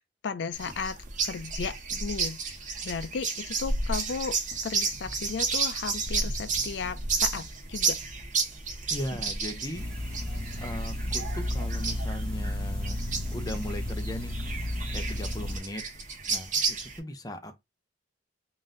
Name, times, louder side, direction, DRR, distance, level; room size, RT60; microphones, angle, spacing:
voice 1, 0.2-1.0 1.2-2.4 2.8-4.4 4.6-8.0, left 5 dB, 70° left, 0.4 m, -35 dB
sound 1, 0.5-17.0, right 4 dB, 45° right, 1.0 m, -32 dB
voice 2, 8.9-9.9 10.6-13.0 13.3-14.3 14.9-15.9 16.3-17.6, left 1 dB, 20° left, 0.6 m, -38 dB
sound 2, 9.7-15.6, left 1 dB, 5° left, 1.4 m, -32 dB
3.9 x 2.6 x 3.7 m
head